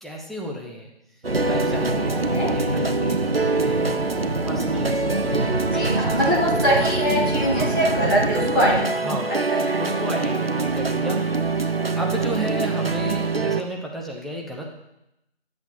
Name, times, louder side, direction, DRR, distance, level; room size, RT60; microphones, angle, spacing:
voice 1, 0.0-0.9 1.4-6.8 7.5-7.8 9.0-11.3 12.0-14.6, equal, ahead, -2 dB, 0.5 m, -33 dB
sound 1, 1.2-13.6, right 3 dB, 65° right, 0.6 m, -25 dB
sound 2, 1.2-8.9, right 1 dB, 80° right, 1.0 m, -27 dB
voice 2, 5.6-9.0 9.3-9.9 10.2-10.3, equal, 20° right, -10 dB, 2.0 m, -23 dB
11.5 x 7.8 x 2.8 m, 0.89 s
figure-of-eight pair, 175°, 32 cm